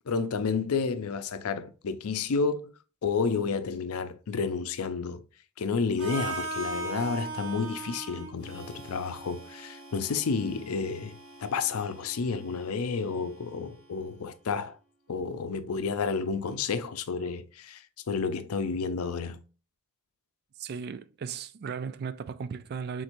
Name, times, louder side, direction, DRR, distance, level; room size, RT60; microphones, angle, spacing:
voice 1, 0.1-2.7 3.0-5.2 5.6-14.7 15.1-19.4, left 5 dB, 80° left, 0.5 m, -31 dB
Harmonica, 6.0-13.9, right 3 dB, 65° right, 1.2 m, -40 dB
voice 2, 20.6-23.0, right 6 dB, 45° right, 0.3 m, -36 dB
4.4 x 3.9 x 2.5 m
head